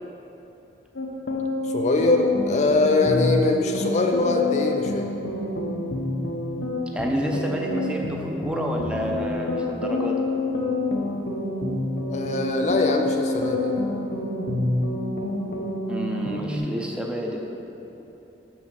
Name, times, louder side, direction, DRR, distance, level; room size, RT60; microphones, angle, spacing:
sound 1, 1.0-16.6, left 2 dB, 85° left, 0.9 m, -27 dB
voice 1, 1.7-5.1 12.1-13.8, left 3 dB, 40° left, 3 dB, 0.4 m, -22 dB
voice 2, 6.9-10.3 15.9-17.4, equal, 5° right, 0 dB, 0.6 m, -29 dB
6.2 x 5.9 x 6.3 m, 3.0 s
head